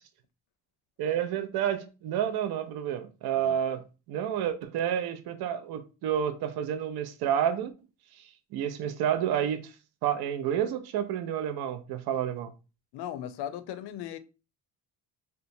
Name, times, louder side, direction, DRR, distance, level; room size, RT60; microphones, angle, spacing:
voice 1, 1.0-7.7 8.5-9.7 10.0-12.5, right 9 dB, 70° right, 0.5 m, -29 dB
voice 2, 12.9-14.2, left 10 dB, 80° left, 0.5 m, -37 dB
2.9 x 2.2 x 2.6 m
cardioid pair, 100°, 39 cm